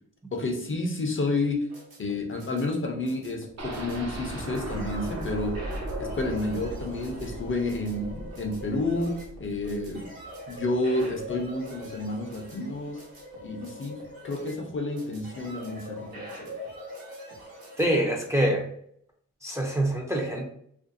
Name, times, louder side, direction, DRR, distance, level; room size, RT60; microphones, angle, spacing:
voice 1, 0.3-1.7 2.0-5.7 6.0-10.1 10.5-13.0 13.4-14.0 14.2-16.6, left 2 dB, 35° left, 2 dB, 0.6 m, -30 dB
sound 1, 1.4-17.9, equal, 90° right, 1.0 m, -43 dB
sound 2, 3.6-11.4 11.8-11.9 12.3-12.4, right 1 dB, 50° right, 0.7 m, -38 dB
voice 2, 17.8-18.7 19.4-20.5, right 1 dB, 10° right, 0 dB, 0.5 m, -25 dB
2.5 x 2.2 x 2.6 m, 0.67 s
cardioid pair, 60°, 34 cm